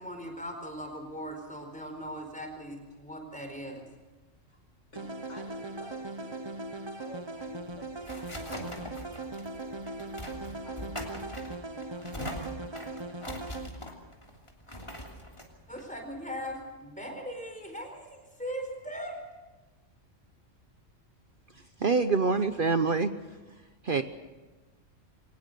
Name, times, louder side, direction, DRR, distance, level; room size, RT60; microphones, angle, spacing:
voice 1, 0.0-3.8 15.7-19.2, equal, 5° left, 4 dB, 4.4 m, -39 dB
voice 2, 4.9-6.4 6.9-9.3 9.5-9.8 10.1-11.3 11.6-12.1 12.6-13.3, left 1 dB, 70° left, 3 dB, 5.8 m, -52 dB
sound 1, 5.0-13.7, right 2 dB, 25° right, 0.9 m, -39 dB
sound 2, 7.4-16.7, equal, 25° left, 3.2 m, -43 dB
voice 3, 21.8-23.1 23.8-24.0, right 4 dB, 45° right, 9 dB, 1.0 m, -25 dB
23.0 x 19.5 x 6.8 m, 1.2 s
omnidirectional pair, 1.3 m